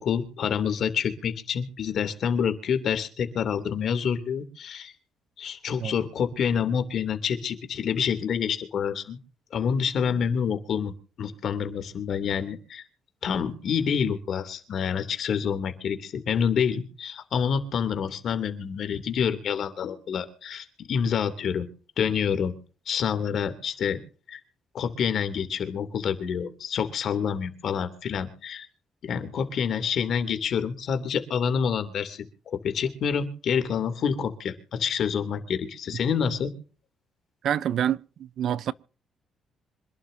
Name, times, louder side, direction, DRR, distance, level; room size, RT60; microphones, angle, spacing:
voice 1, 0.0-4.9 5.4-9.2 9.5-10.9 11.2-12.8 13.2-21.7 22.0-22.5 22.9-24.0 24.3-24.4 24.7-28.7 29.0-36.5, left 7 dB, 65° left, 3.0 m, -27 dB
voice 2, 37.4-38.7, right 10 dB, 70° right, 0.7 m, -27 dB
26.0 x 12.0 x 2.8 m
cardioid pair, 90°, 0 cm